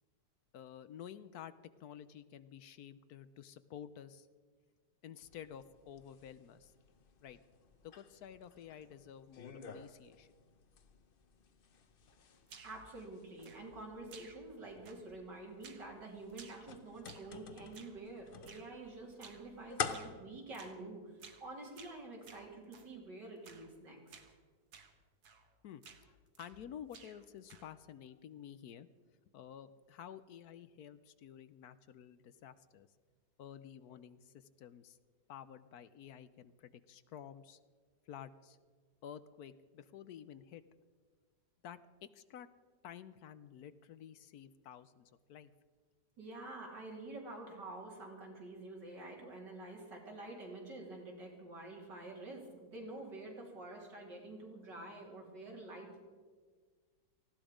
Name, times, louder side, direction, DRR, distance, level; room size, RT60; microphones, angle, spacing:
voice 1, 0.5-1.5 1.8-4.3 5.0-6.7 7.2-7.4 7.8-10.3 25.6-28.9 29.3-32.9 33.4-35.0 35.3-37.6 38.1-38.6 39.0-40.6 41.6-42.5 42.8-45.5, left 9 dB, 70° left, 14 dB, 1.1 m, -51 dB
sound 1, 5.2-20.1, left 6 dB, 45° left, 0.7 m, -49 dB
sound 2, 12.5-12.9 13.4-13.8 14.1-14.6 14.9-15.2 15.6-15.9 16.3-17.4 17.7-18.0 18.5-18.7 19.2-19.5 19.9-20.2 20.5-20.8 21.2-21.5 21.8-22.9 23.4-23.7 24.1-24.3 24.7-24.9 25.2-25.5 25.8-26.6 26.9-27.8, right 5 dB, 65° right, 1.8 m, -57 dB
voice 2, 12.6-24.2 46.2-56.0, right 2 dB, 85° right, -1 dB, 3.9 m, -48 dB
19.0 x 15.0 x 5.1 m, 1.5 s
omnidirectional pair, 1.8 m